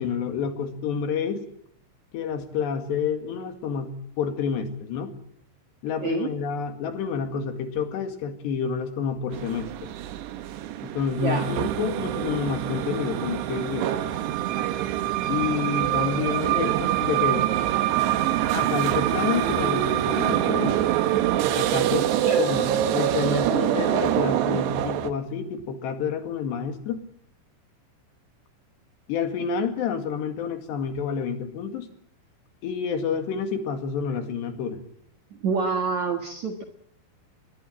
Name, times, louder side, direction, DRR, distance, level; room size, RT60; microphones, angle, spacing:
voice 1, 0.0-1.4 2.1-5.1 5.8-9.9 10.8-14.2 15.3-17.5 18.5-20.9 21.5-22.1 22.4-27.0 29.1-31.9 32.6-34.8, left 6 dB, 70° left, 7 dB, 4.1 m, -29 dB
sound 1, 9.3-25.1, right 12 dB, 70° right, 3.2 m, -25 dB
voice 2, 22.2-22.6 35.4-36.6, right 5 dB, 55° right, 5 dB, 2.2 m, -27 dB
23.5 x 21.5 x 7.4 m, 0.72 s
omnidirectional pair, 5.4 m